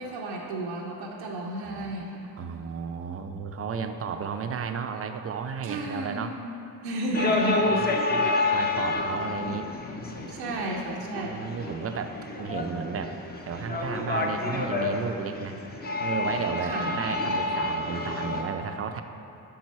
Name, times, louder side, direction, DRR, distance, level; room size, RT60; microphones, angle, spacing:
voice 1, 0.0-2.3 5.6-6.4 6.8-7.8 10.3-11.4 16.6-16.9, equal, 85° right, -2 dB, 0.7 m, -32 dB
voice 2, 1.6-1.9 2.4-6.3 7.7-9.7 10.4-10.5 11.2-13.2 13.4-15.6 16.0-19.0, right 6 dB, 35° right, 7 dB, 0.5 m, -33 dB
sound 1, 7.1-18.4, left 2 dB, 20° left, 0.7 m, -29 dB
5.7 x 4.7 x 4.2 m, 2.8 s
supercardioid pair, 50°, 43 cm